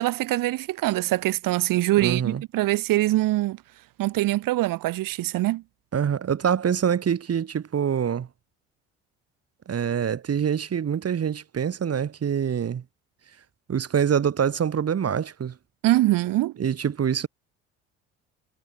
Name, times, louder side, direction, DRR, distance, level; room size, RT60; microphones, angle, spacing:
voice 1, 0.0-3.6 4.0-5.6 15.8-16.5, right 16 dB, 60° right, 2.2 m, -23 dB
voice 2, 2.0-2.4 5.9-8.3 9.7-12.8 13.7-15.5 16.6-17.3, right 8 dB, 40° right, 3.1 m, -25 dB
hypercardioid pair, 60°, 37 cm